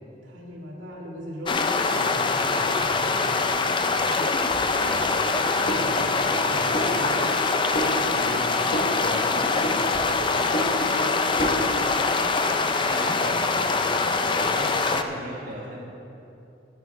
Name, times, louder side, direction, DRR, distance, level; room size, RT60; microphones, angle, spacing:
voice 1, 0.2-3.8 4.6-5.0 5.5-7.3 7.8-10.5 11.0-11.6, equal, 85° right, -2 dB, 2.3 m, -38 dB
sound 1, 1.4-15.0, left 4 dB, 25° left, 0.4 m, -24 dB
sound 2, 4.5-6.4 6.7-7.5 7.7-8.4 8.7-9.3 9.6-11.1 11.4-11.7, equal, 45° left, 1.4 m, -31 dB
voice 2, 12.7-15.8, right 1 dB, 50° right, -6 dB, 1.7 m, -37 dB
11.5 x 9.4 x 4.6 m, 2.8 s
head